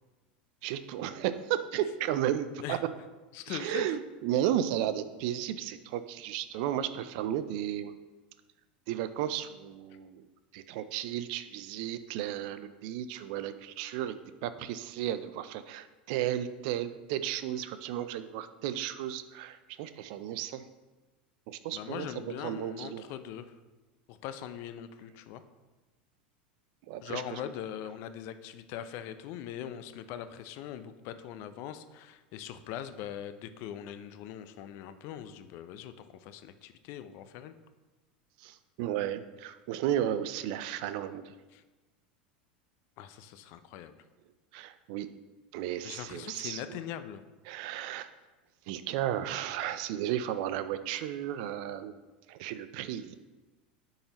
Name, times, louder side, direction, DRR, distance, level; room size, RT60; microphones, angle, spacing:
voice 1, 0.6-2.8 3.5-8.0 8.9-10.2 10.5-14.2 14.4-20.7 21.5-22.1 22.4-23.0 26.9-27.4 38.4-41.3 44.5-45.1 45.5-46.6 47.5-48.1 48.7-52.0 52.3-53.2, right 11 dB, 60° right, 12 dB, 0.4 m, -34 dB
voice 2, 3.3-4.0 21.7-23.6 24.1-25.4 27.0-37.5 41.5-41.6 43.0-43.9 45.8-47.2, left 10 dB, 55° left, 11 dB, 0.5 m, -41 dB
9.8 x 3.9 x 2.9 m, 1.2 s
hypercardioid pair, 85°, 5 cm